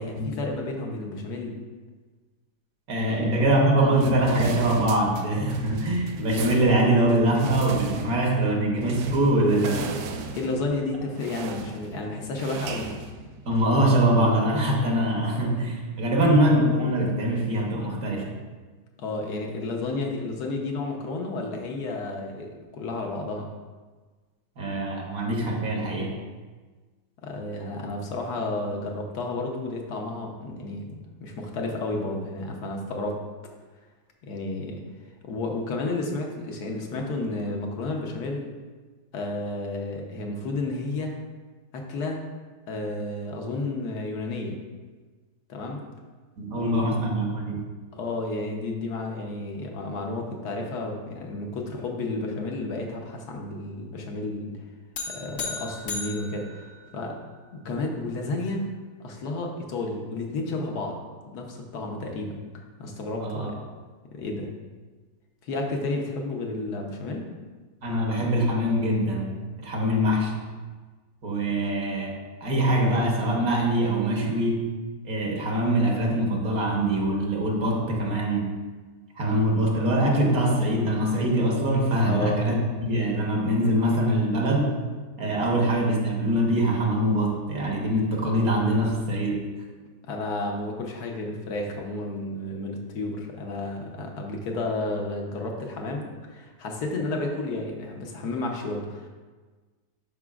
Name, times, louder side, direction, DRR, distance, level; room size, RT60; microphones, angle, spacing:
voice 1, 0.0-1.6 3.1-3.3 10.3-12.9 19.0-23.5 27.2-33.2 34.2-34.8 35.2-38.5 39.1-41.2 41.7-42.2 42.7-44.6 45.5-45.8 46.5-47.1 47.9-54.5 55.1-57.2 57.5-58.7 59.0-62.4 62.8-63.7 64.1-64.5 65.4-67.3 82.1-82.5 90.1-99.1, left 2 dB, 70° left, 1 dB, 1.4 m, -31 dB
voice 2, 2.9-9.9 13.5-18.3 24.6-26.2 46.4-47.6 63.2-63.5 67.8-69.3 69.6-70.4 71.2-72.1 72.4-74.6 75.1-78.5 79.2-84.8 85.2-89.4, right 1 dB, 60° right, 0 dB, 1.4 m, -23 dB
sound 1, 4.0-13.8, right 4 dB, 80° right, 1.2 m, -37 dB
sound 2, 55.0-57.4, left 4 dB, 50° left, 0.7 m, -36 dB
11.0 x 4.9 x 2.4 m, 1.4 s
omnidirectional pair, 1.8 m